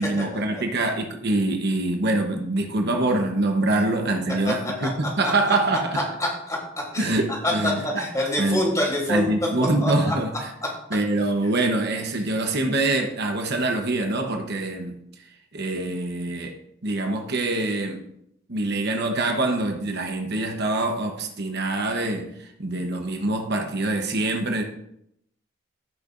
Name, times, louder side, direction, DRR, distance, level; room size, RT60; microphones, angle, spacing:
voice 1, 0.0-6.0 7.0-8.0 8.4-8.6 9.1-10.5 10.9-15.0 15.5-16.6 16.8-18.1 18.5-24.6, right 2 dB, 55° right, 1.0 m, -25 dB
voice 2, 5.9-6.6 6.9-7.1 7.4-9.3 9.8-10.1, left 1 dB, 15° left, 3.2 m, -26 dB
15.5 x 6.7 x 2.6 m
head